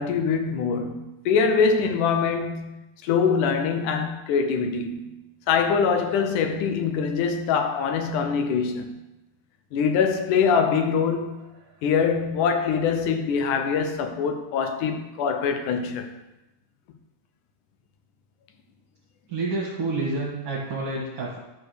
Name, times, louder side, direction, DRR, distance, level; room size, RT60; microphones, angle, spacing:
voice 1, 0.0-5.1 5.5-8.9 9.7-11.4 11.8-16.1, left 6 dB, 90° left, 2.5 m, -24 dB
voice 2, 19.3-21.4, right 3 dB, 50° right, 2.6 m, -28 dB
11.0 x 5.0 x 6.5 m
omnidirectional pair, 3.5 m